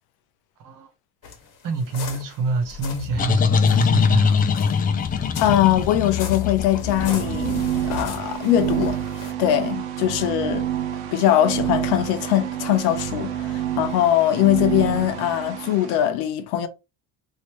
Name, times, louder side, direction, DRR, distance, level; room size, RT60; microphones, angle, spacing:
sound 1, 1.2-3.1 3.6-9.3, left 6 dB, 55° left, 1.2 m, -38 dB
voice 1, 1.6-4.6, right 4 dB, 55° right, 1.1 m, -27 dB
sound 2, 2.7-8.2, left 6 dB, 25° left, 0.4 m, -22 dB
voice 2, 5.4-9.0 9.4-10.7 11.1-16.7, left 12 dB, 75° left, 0.8 m, -21 dB
sound 3, 6.8-15.9, right 11 dB, 75° right, 0.9 m, -28 dB
3.1 x 2.8 x 3.0 m
supercardioid pair, 105°, 39 cm